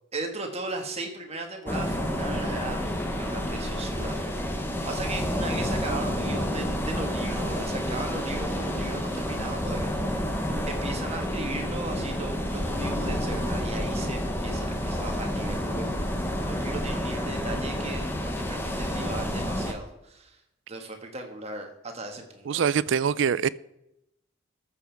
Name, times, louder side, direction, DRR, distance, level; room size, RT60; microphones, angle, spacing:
voice 1, 0.1-10.3 10.7-20.4 20.7-22.7, right 2 dB, 30° right, 1.6 m, -37 dB
sound 1, 1.7-19.7, equal, 10° left, 1.0 m, -29 dB
voice 2, 22.5-23.5, right 7 dB, 65° right, 0.4 m, -24 dB
13.5 x 7.1 x 4.6 m
head